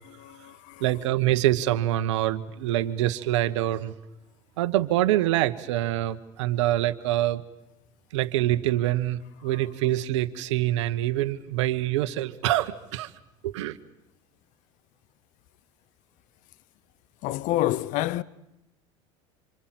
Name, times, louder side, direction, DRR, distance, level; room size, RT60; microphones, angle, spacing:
voice 1, 0.0-0.8 9.4-9.6 17.2-18.2, left 15 dB, 60° left, 0.9 m, -29 dB
voice 2, 0.8-3.9 4.6-7.4 8.1-13.1 13.4-13.8, right 14 dB, 75° right, 1.3 m, -25 dB
26.5 x 26.0 x 7.8 m
hypercardioid pair, 90°, 15 cm